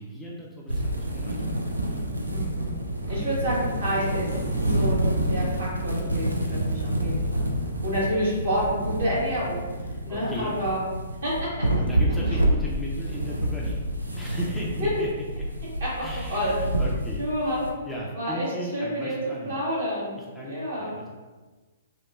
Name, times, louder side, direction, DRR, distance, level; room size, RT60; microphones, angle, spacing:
voice 1, 0.0-1.4 1.7-2.2 3.1-3.3 4.3-4.6 6.5-6.9 10.1-10.5 11.8-13.8 14.1-15.1 16.0-17.2 17.8-19.6 20.2-21.1, equal, 5° left, -5 dB, 0.3 m, -36 dB
sound 1, 0.7-17.7, right 1 dB, 85° right, 0.3 m, -28 dB
voice 2, 2.3-2.8 3.1-4.3 4.7-5.0 5.3-7.5 7.8-10.8 11.2-11.5 14.8-15.0 15.8-16.0 16.3-16.5 17.2-17.6 18.1-18.5 18.7-19.1 19.4-20.2 20.4-20.9, equal, 60° right, -7 dB, 1.3 m, -29 dB
2.7 x 2.1 x 2.4 m, 1.3 s
figure-of-eight pair, 115°, 0 cm